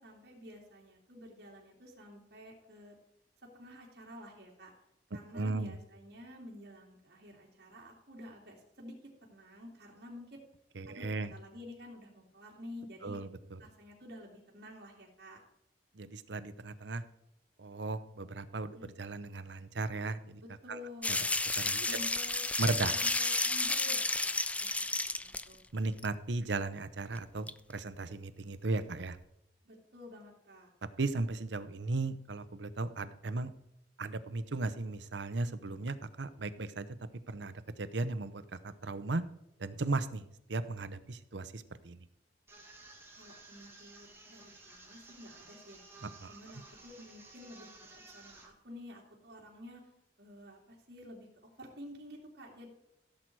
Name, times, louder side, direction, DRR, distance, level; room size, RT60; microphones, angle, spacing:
voice 1, 0.0-2.9 3.5-4.7 5.1-8.9 9.3-10.4 10.9-13.2 13.6-15.4 18.7-18.9 20.4-21.4 21.8-22.4 22.9-24.7 25.2-25.6 29.6-30.7 43.1-47.7 48.0-49.8 50.2-51.3 51.6-52.7, left 1 dB, 60° right, -2 dB, 2.9 m, -50 dB
voice 2, 5.3-5.7 10.8-11.3 13.0-13.6 15.9-17.0 17.6-20.4 20.7-20.8 21.1-21.2 21.6-21.9 22.6-22.9 25.7-29.2 31.0-33.5 34.0-36.9 37.3-39.2 39.6-42.0 46.0-46.4, right 3 dB, 80° right, 13 dB, 0.8 m, -36 dB
sound 1, 21.0-25.5 26.0-26.1 27.2-27.3 27.5-27.6, left 2 dB, 10° left, 0.4 m, -32 dB
sound 2, 42.5-48.5, right 3 dB, 15° right, 2.1 m, -55 dB
15.5 x 7.7 x 4.7 m, 0.83 s
head